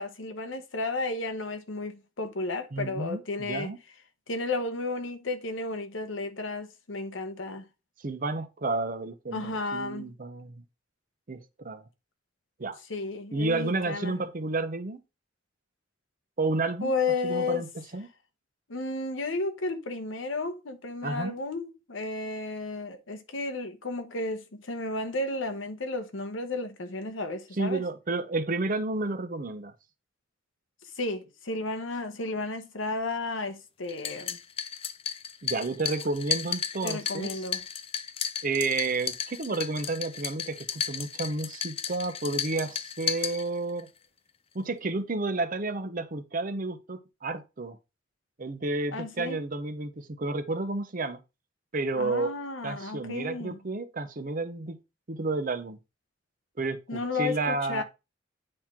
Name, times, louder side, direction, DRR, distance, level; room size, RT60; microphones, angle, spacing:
voice 1, 0.0-3.8 4.3-7.6 9.3-10.1 12.9-14.2 16.8-17.6 18.7-27.8 31.0-34.4 36.8-37.6 48.9-49.4 52.0-53.6 56.9-57.8, left 3 dB, 80° left, 1.0 m, -33 dB
voice 2, 2.7-3.8 8.0-10.6 11.3-11.4 11.6-11.8 12.6-12.8 13.3-15.0 16.4-16.9 17.2-18.1 21.0-21.3 27.6-29.7 35.4-37.3 38.4-43.9 44.5-47.8 48.4-51.2 51.7-52.4 52.6-54.8 55.1-55.8 56.6-57.8, right 3 dB, 45° right, 0.7 m, -31 dB
sound 1, 33.9-43.9, left 8 dB, 30° left, 0.4 m, -34 dB
8.8 x 4.5 x 3.7 m
head